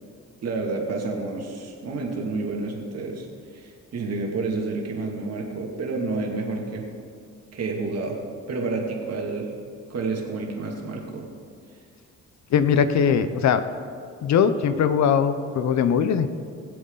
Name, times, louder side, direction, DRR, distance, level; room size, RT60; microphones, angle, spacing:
voice 1, 0.4-3.3 3.5-6.8 7.5-8.2 8.5-9.5 9.9-11.2, right 3 dB, 55° right, 0 dB, 2.6 m, -29 dB
voice 2, 12.5-13.6 14.2-16.3, left 7 dB, 65° left, 11 dB, 0.8 m, -20 dB
20.5 x 7.7 x 4.0 m, 2.3 s
cardioid pair, 90°, 30 cm